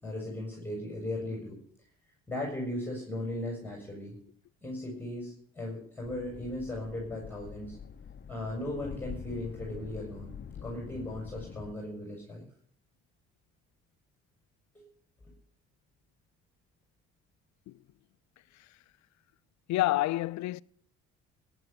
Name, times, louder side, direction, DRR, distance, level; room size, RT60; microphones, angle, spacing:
voice 1, 0.0-1.6 2.3-4.1 4.6-7.8 8.3-10.3 10.6-12.5 14.7-14.8, left 1 dB, 5° left, 7.1 m, -37 dB
sound 1, 6.0-11.7, left 7 dB, 35° left, 1.0 m, -45 dB
voice 2, 19.7-20.6, left 16 dB, 60° left, 0.6 m, -28 dB
17.5 x 11.0 x 6.9 m
hypercardioid pair, 60°, 33 cm